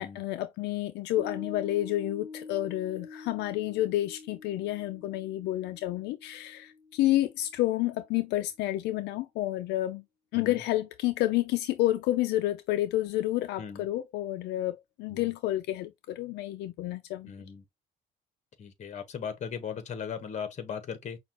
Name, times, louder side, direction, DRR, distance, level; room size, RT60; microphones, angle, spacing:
voice 1, 0.0-10.0 10.3-17.3, left 15 dB, 85° left, 0.5 m, -30 dB
Piano, 1.2-7.9, left 4 dB, 5° right, 1.5 m, -46 dB
voice 2, 17.2-17.6 18.6-21.2, left 7 dB, 45° left, 1.3 m, -38 dB
5.7 x 2.4 x 2.9 m
cardioid pair, 110°, 17 cm